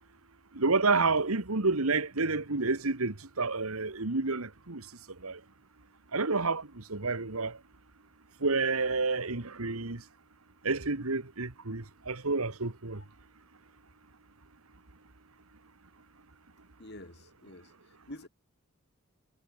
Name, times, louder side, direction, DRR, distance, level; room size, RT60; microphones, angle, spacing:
voice 1, 0.6-4.8 5.2-5.4 6.1-7.6 8.4-10.0 10.6-13.0, right 3 dB, 85° right, 1.8 m, -29 dB
voice 2, 16.8-18.3, left 1 dB, 50° left, 3.8 m, -48 dB
head